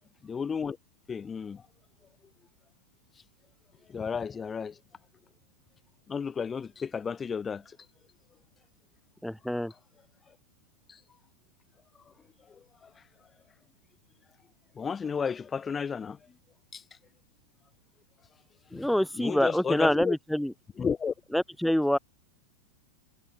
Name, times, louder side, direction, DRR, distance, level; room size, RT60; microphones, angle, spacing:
voice 1, 0.2-0.8 1.1-1.6 3.9-4.8 6.1-7.6 10.9-11.0 12.5-12.6 14.8-16.2 16.7-16.8 18.7-20.1 20.8-21.1, left 6 dB, 20° left, 3.7 m, -32 dB
voice 2, 9.2-9.7 18.7-20.5 21.3-22.0, equal, ahead, 2.2 m, -26 dB
figure-of-eight pair, 90°, 0 cm